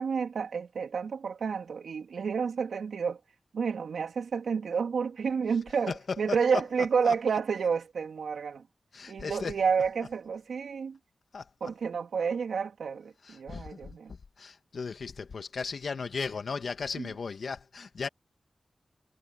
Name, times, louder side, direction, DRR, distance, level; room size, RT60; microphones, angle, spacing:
voice 1, 0.0-3.2 3.5-8.7 9.1-11.0 11.6-14.1 17.0-17.1, right 6 dB, 85° right, 3.4 m, -30 dB
voice 2, 5.9-6.6 7.0-7.2 8.9-9.5 11.3-11.7 13.2-18.1, left 5 dB, 75° left, 2.2 m, -36 dB
cardioid pair, 45°, 0 cm